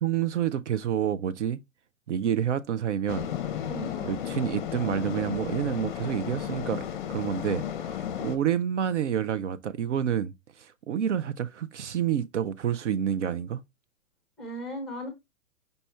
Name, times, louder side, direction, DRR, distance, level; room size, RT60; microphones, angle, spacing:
voice 1, 0.0-1.6 2.1-3.3 4.0-13.6, right 9 dB, 60° right, 0.5 m, -28 dB
sound 1, 3.1-8.4, left 9 dB, 35° left, 0.6 m, -34 dB
voice 2, 3.7-4.1 14.4-15.1, equal, ahead, 0.7 m, -37 dB
5.4 x 2.2 x 4.2 m
hypercardioid pair, 160°, 41 cm